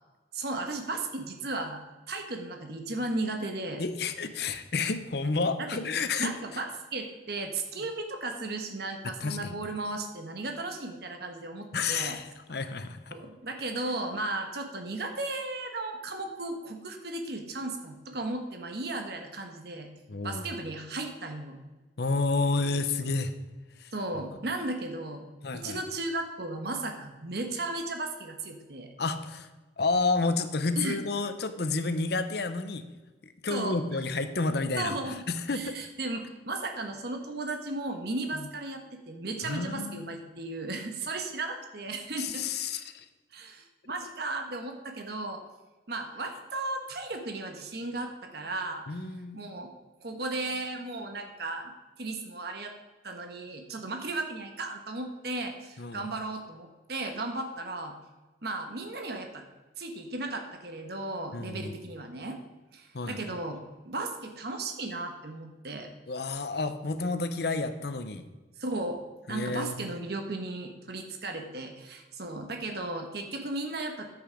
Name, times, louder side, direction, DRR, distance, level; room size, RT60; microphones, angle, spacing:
voice 1, 0.3-1.8 2.1-3.8 5.6-5.8 6.2-12.2 13.1-19.9 20.2-21.6 23.9-28.9 30.8-31.0 33.5-33.8 34.8-35.2 35.5-42.4 43.3-45.4 45.9-48.8 49.3-49.7 50.0-51.7 52.0-52.7 53.0-57.9 58.4-59.4 59.8-62.4 62.7-63.6 63.8-65.9 68.6-69.0 69.3-74.1, right 2 dB, 55° right, 4 dB, 1.2 m, -35 dB
voice 2, 3.8-6.3 9.0-9.6 11.7-13.1 20.1-20.4 22.0-23.3 23.8-23.9 25.4-25.8 29.0-29.5 29.8-32.9 33.2-35.8 38.3-38.5 39.4-40.2 42.2-43.0 48.9-49.4 55.8-56.1 61.3-61.7 62.9-63.2 66.1-68.2 69.3-69.9, left 3 dB, 60° left, 10 dB, 0.8 m, -30 dB
10.0 x 8.0 x 5.1 m, 1.2 s
head